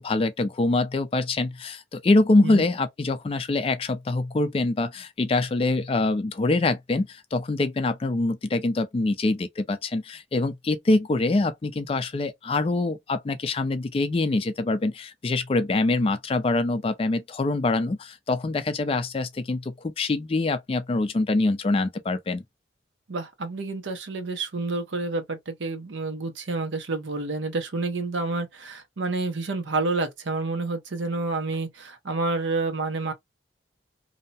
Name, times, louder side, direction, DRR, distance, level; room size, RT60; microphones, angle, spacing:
voice 1, 0.0-22.4, left 2 dB, 30° left, 0.3 m, -24 dB
voice 2, 23.1-33.1, right 3 dB, 80° right, 0.7 m, -29 dB
2.7 x 2.1 x 2.7 m
head